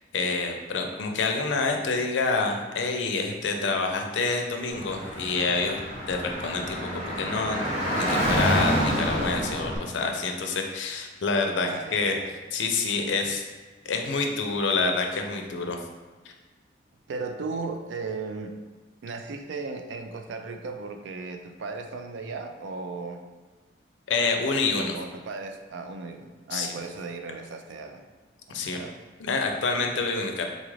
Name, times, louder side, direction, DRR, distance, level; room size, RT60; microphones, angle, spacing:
voice 1, 0.1-5.8 6.1-7.6 8.0-12.2 12.5-13.4 13.9-15.8 24.1-25.0 26.5-26.8 28.5-28.8 29.2-30.5, left 4 dB, 85° left, 3 dB, 0.5 m, -27 dB
Car / Traffic noise roadway noise, 4.7-9.8, equal, 40° right, 0.8 m, -27 dB
voice 2, 11.6-12.3 13.1-13.2 17.1-18.5 19.0-23.2 24.7-28.0 28.5-29.0, right 4 dB, 90° right, 6 dB, 0.4 m, -36 dB
3.9 x 2.4 x 3.1 m, 1.3 s
head